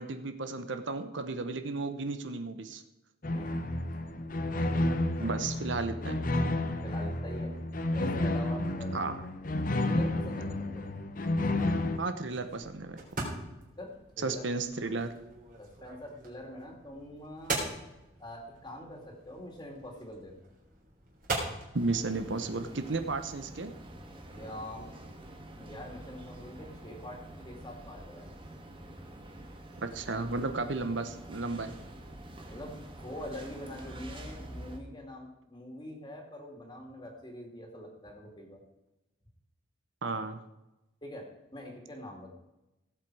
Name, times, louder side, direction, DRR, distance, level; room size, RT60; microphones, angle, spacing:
voice 1, 0.0-2.8 5.2-6.2 8.9-9.2 12.0-13.0 14.2-15.1 21.7-23.7 29.8-31.8 40.0-40.4, right 3 dB, 70° right, 9 dB, 0.9 m, -33 dB
sound 1, 3.2-12.0, left 1 dB, 45° left, 0.8 m, -31 dB
voice 2, 5.2-5.5 6.8-7.5 7.9-8.9 9.8-10.8 13.8-14.5 15.6-17.6 18.2-20.4 24.3-28.3 32.5-32.7 33.0-38.6 41.0-41.3 41.5-42.3, left 1 dB, 20° left, 1 dB, 2.6 m, -44 dB
sound 2, 11.6-21.7, right 2 dB, 45° right, 3.6 m, -41 dB
sound 3, 21.7-34.8, right 1 dB, 25° right, 1.5 m, -47 dB
17.0 x 7.8 x 4.8 m, 0.95 s
head